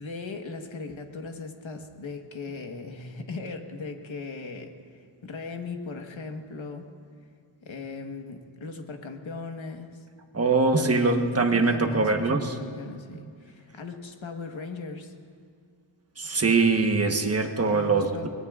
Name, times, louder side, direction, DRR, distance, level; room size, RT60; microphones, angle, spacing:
voice 1, 0.0-6.9 7.6-9.9 10.8-15.1 17.7-18.3, left 4 dB, 65° left, 4 dB, 1.4 m, -38 dB
voice 2, 10.3-12.5 16.2-18.3, right 3 dB, 30° right, 4 dB, 1.1 m, -23 dB
24.0 x 20.5 x 2.4 m, 2.2 s
wide cardioid pair, 130°, 50 cm